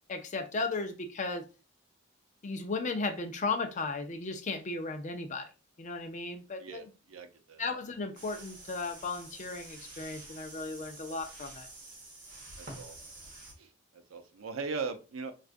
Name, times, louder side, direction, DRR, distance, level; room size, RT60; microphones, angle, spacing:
voice 1, 0.1-1.4 2.4-5.5 5.8-6.9 7.6-11.7, left 3 dB, 35° left, 6 dB, 0.5 m, -35 dB
voice 2, 6.6-7.6 12.6-13.0 13.6-15.3, right 4 dB, 85° right, 8 dB, 0.5 m, -40 dB
sound 1, 8.2-13.5, right 2 dB, 40° right, 1.2 m, -48 dB
4.5 x 2.4 x 2.5 m, 0.32 s
head